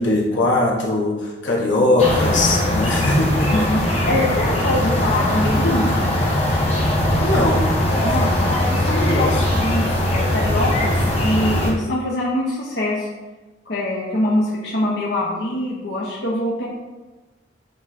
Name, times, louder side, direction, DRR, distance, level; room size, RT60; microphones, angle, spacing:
voice 1, 0.0-3.7 7.2-7.7 9.1-9.4, left 2 dB, 80° left, -2 dB, 1.3 m, -20 dB
sound 1, 2.0-11.7, left 1 dB, 35° left, 1.3 m, -20 dB
voice 2, 4.1-5.9 8.0-13.1 13.7-16.7, left 1 dB, 60° left, -5 dB, 0.9 m, -23 dB
8.6 x 3.2 x 4.2 m, 1.2 s
head